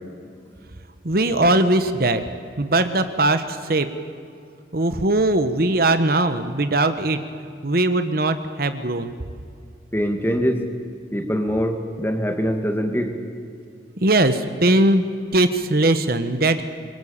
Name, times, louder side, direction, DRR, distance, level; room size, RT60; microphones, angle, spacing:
voice 1, 1.0-2.2 2.6-3.9 4.7-7.2 7.6-9.1 14.0-15.0 15.3-16.6, right 2 dB, 50° right, 10 dB, 1.2 m, -20 dB
voice 2, 9.9-10.7 11.1-13.1, equal, 10° left, 4 dB, 2.3 m, -23 dB
26.5 x 23.5 x 8.8 m, 2.4 s
head